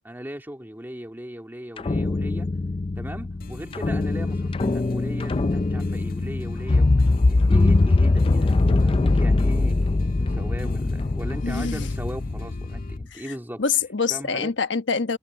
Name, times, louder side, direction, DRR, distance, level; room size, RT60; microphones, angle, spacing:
voice 1, 0.0-2.5 3.0-13.6 14.1-14.5, equal, 10° right, 2.3 m, -38 dB
sound 1, 1.8-13.0, left 2 dB, 30° left, 0.4 m, -22 dB
sound 2, 3.4-13.0, left 1 dB, 50° left, 1.8 m, -42 dB
voice 2, 11.4-11.9 13.1-13.2 13.6-15.2, left 5 dB, 80° left, 1.3 m, -25 dB
head